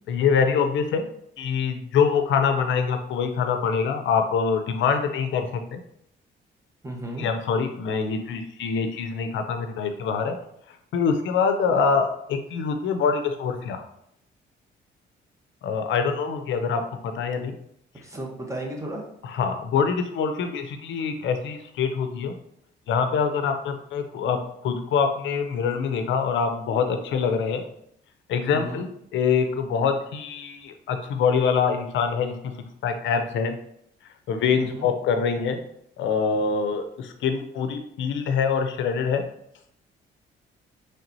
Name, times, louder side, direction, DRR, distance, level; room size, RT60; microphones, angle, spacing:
voice 1, 0.1-1.0 1.4-5.8 7.2-10.4 10.9-13.8 15.6-17.5 19.2-22.3 22.9-24.4 24.6-27.6 28.3-32.3 32.8-33.5 34.3-35.6 36.0-39.2, left 6 dB, 75° left, 6 dB, 0.5 m, -24 dB
voice 2, 6.8-7.3 18.0-19.0 28.5-28.8 34.6-34.9, right 1 dB, 15° right, 0 dB, 1.0 m, -34 dB
4.2 x 3.3 x 2.7 m, 0.74 s
cardioid pair, 90°, 20 cm